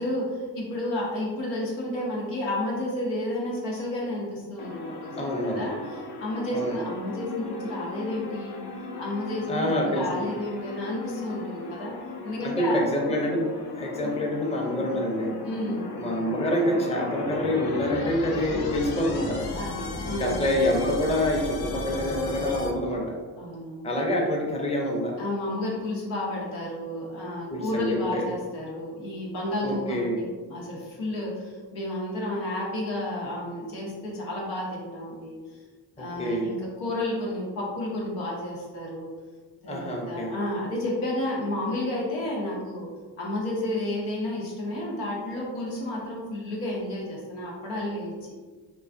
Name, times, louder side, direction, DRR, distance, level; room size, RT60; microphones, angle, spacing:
voice 1, 0.0-8.6 9.0-12.0 12.2-12.8 15.4-15.9 19.5-20.5 23.4-23.9 25.2-35.6 36.0-39.1 39.6-42.9 43.2-48.3, left 1 dB, 90° left, -4 dB, 0.7 m, -31 dB
sound 1, 4.6-22.7, left 3 dB, 55° left, 0.6 m, -36 dB
voice 2, 5.2-5.7 6.5-6.8 9.5-10.3 12.4-15.4 16.0-19.4 20.2-23.2 23.8-25.2 27.5-28.3 29.6-30.2 36.0-36.5 39.7-40.3, left 1 dB, 15° left, 0 dB, 0.6 m, -26 dB
2.4 x 2.3 x 2.4 m, 1.4 s
supercardioid pair, 45°, 46 cm